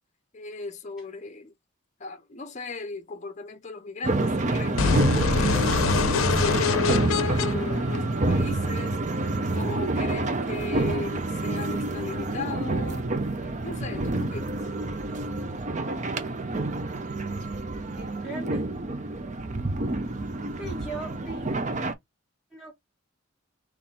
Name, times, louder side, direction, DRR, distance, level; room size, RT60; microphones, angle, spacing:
voice 1, 0.3-1.5 2.0-5.8 6.1-13.1 13.4-14.5, left 3 dB, 35° left, 0.7 m, -37 dB
sound 1, 4.0-21.9, right 2 dB, 35° right, 0.6 m, -28 dB
sound 2, 4.8-8.7, left 5 dB, 75° left, 0.6 m, -25 dB
voice 2, 18.0-18.6 20.6-21.5 22.5-22.8, right 2 dB, ahead, 1.4 m, -38 dB
3.6 x 3.2 x 4.2 m
head